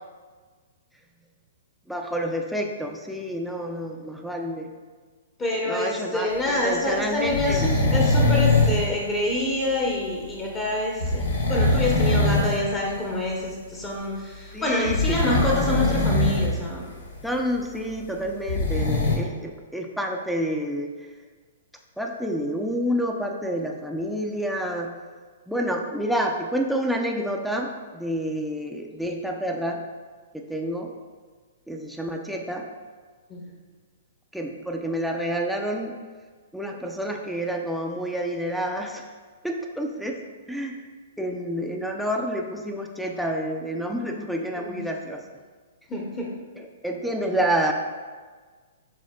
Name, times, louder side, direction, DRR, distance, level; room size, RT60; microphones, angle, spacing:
voice 1, 1.9-4.7 5.7-7.7 14.5-15.2 17.2-20.9 22.0-24.9 25.5-29.8 30.3-30.9 31.7-32.7 34.3-35.9 36.5-39.0 39.4-40.2 40.5-40.8 41.2-45.2 46.6-47.7, equal, ahead, 2 dB, 0.4 m, -28 dB
voice 2, 5.4-16.8 33.3-33.4 44.6-44.8 45.9-46.3, left 1 dB, 20° left, -3 dB, 0.8 m, -27 dB
sound 1, 7.2-8.9 11.0-12.6 12.9-13.1 14.8-16.5 16.8-16.9 18.2-19.2, left 2 dB, 75° left, 0.9 m, -22 dB
6.2 x 3.6 x 2.2 m, 1.5 s
hypercardioid pair, 130°, 0 cm